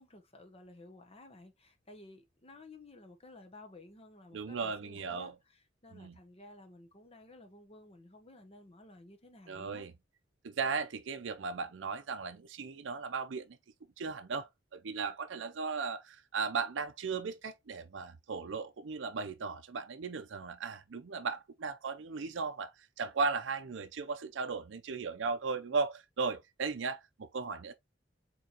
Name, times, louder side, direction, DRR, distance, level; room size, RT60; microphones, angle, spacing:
voice 1, 0.0-9.9, left 2 dB, 30° left, 1.0 m, -54 dB
voice 2, 4.3-5.3 5.9-6.2 9.5-9.9 10.4-13.6 14.0-27.7, right 4 dB, 70° right, 0.5 m, -36 dB
4.5 x 3.9 x 2.8 m
head